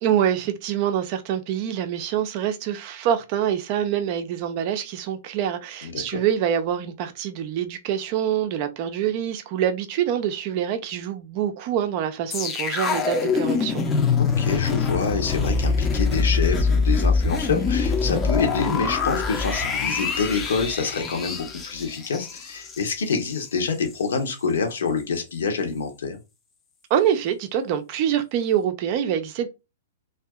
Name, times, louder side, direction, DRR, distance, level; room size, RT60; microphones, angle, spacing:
voice 1, 0.0-13.8 26.9-29.5, right 9 dB, 40° right, 0.4 m, -25 dB
sound 1, 12.3-23.5 23.8-24.0, left 4 dB, 20° left, 0.5 m, -24 dB
voice 2, 14.2-26.2, left 5 dB, 65° left, 0.8 m, -27 dB
2.6 x 2.3 x 2.3 m
figure-of-eight pair, 110°, 0 cm